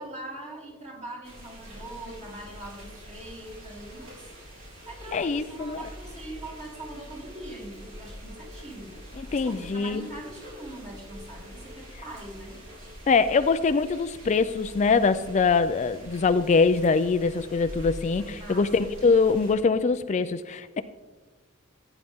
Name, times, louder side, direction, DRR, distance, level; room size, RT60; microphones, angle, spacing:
voice 1, 0.0-4.3 4.9-8.9 9.4-12.5 18.3-18.7, right 1 dB, 35° right, -2 dB, 3.4 m, -42 dB
sound 1, 1.2-19.5, equal, 75° right, 3.7 m, -45 dB
voice 2, 5.1-5.8 9.2-10.1 13.1-20.8, left 4 dB, 35° left, 11 dB, 0.4 m, -23 dB
15.5 x 9.0 x 3.6 m, 1.3 s
head